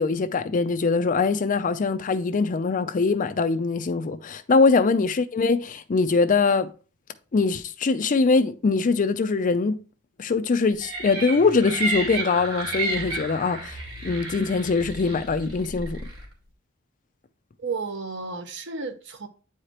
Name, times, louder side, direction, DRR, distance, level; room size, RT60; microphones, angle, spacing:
voice 1, 0.0-6.7 7.3-9.8 10.2-16.0, left 4 dB, 40° left, 0.4 m, -22 dB
sound 1, 10.8-16.2, right 2 dB, 75° right, 2.7 m, -32 dB
voice 2, 17.6-19.3, right 4 dB, 60° right, 0.9 m, -32 dB
8.9 x 4.9 x 2.9 m
head